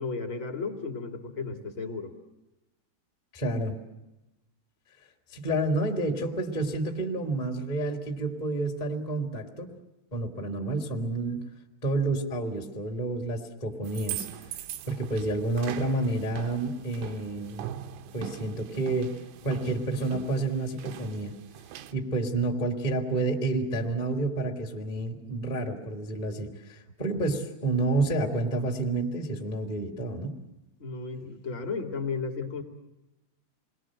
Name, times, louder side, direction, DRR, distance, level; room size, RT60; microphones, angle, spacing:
voice 1, 0.0-2.1 30.8-32.6, left 4 dB, 35° left, 2 dB, 2.2 m, -34 dB
voice 2, 3.3-3.8 5.3-9.7 10.1-11.4 11.8-14.3 14.8-17.6 18.1-19.1 19.4-21.3 21.9-30.4, right 2 dB, 15° left, 1 dB, 1.7 m, -29 dB
sound 1, 13.8-21.9, right 11 dB, 80° right, 3.4 m, -41 dB
28.5 x 21.0 x 7.7 m, 0.99 s
omnidirectional pair, 5.6 m